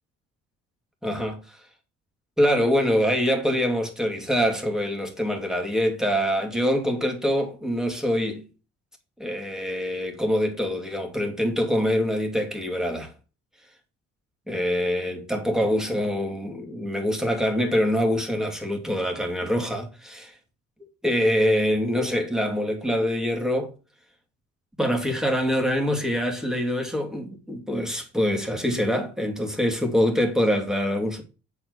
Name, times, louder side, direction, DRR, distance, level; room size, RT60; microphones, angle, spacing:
voice 1, 1.0-1.4 2.4-8.4 9.2-13.1 14.5-20.3 21.0-23.7 24.8-31.2, equal, ahead, 2.5 m, -24 dB
7.5 x 4.7 x 6.4 m
cardioid pair, 90°, 30 cm